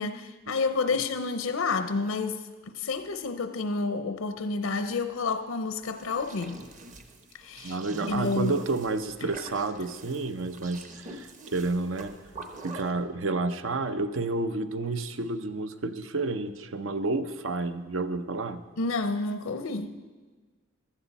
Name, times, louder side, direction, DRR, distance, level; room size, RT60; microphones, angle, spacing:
voice 1, 0.0-6.6 7.4-7.8 8.1-8.6 9.2-9.3 18.8-19.9, left 4 dB, 80° left, 0.6 m, -30 dB
sound 1, 5.8-12.9, right 2 dB, 35° right, 1.0 m, -44 dB
voice 2, 7.6-12.1 12.6-18.6, right 3 dB, 70° right, 0.7 m, -30 dB
15.5 x 12.5 x 4.1 m
head